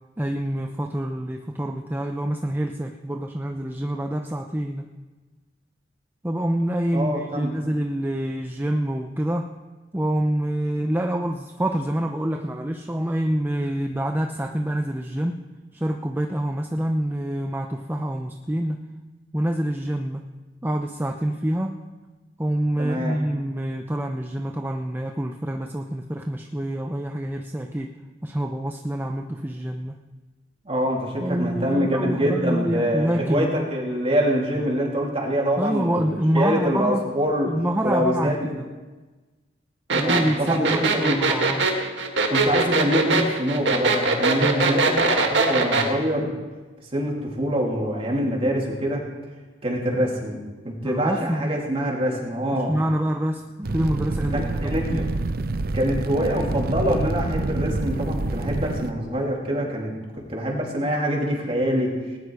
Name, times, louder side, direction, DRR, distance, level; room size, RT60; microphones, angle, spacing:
voice 1, 0.2-4.9 6.2-9.5 9.9-15.4 15.7-18.8 19.3-20.3 20.6-21.8 22.4-28.0 28.2-30.0 31.2-33.5 35.6-37.0 37.5-38.7 39.9-41.7 44.4-44.8 50.8-51.6 52.5-55.1, right 1 dB, 10° right, 3 dB, 0.6 m, -26 dB
voice 2, 6.9-7.5 22.8-23.2 30.6-37.5 37.8-38.5 39.9-41.2 42.3-45.0 45.3-46.3 46.9-49.0 49.6-50.4 50.6-52.7 54.3-55.0 55.7-61.9, equal, 35° right, -2 dB, 3.1 m, -25 dB
sound 1, 39.9-45.9, right 3 dB, 80° right, 1.8 m, -21 dB
Fire, 53.6-58.9, right 2 dB, 55° right, 0.6 m, -27 dB
19.0 x 10.0 x 4.8 m, 1.3 s
head